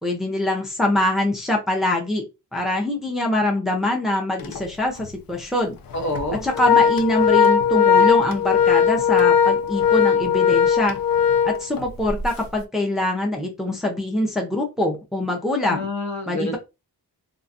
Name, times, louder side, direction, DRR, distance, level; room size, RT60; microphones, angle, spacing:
voice 1, 0.0-2.2 2.5-5.8 6.3-11.0 11.4-15.9 16.3-16.6, left 1 dB, ahead, 0 dB, 0.7 m, -24 dB
Organ, 4.4-4.6 5.0-5.1 5.9-12.2, left 7 dB, 60° left, 0.5 m, -18 dB
voice 2, 5.9-6.4 15.7-16.6, left 1 dB, 45° left, 4 dB, 0.9 m, -27 dB
2.4 x 2.3 x 2.6 m, 0.26 s
cardioid pair, 90°, 40 cm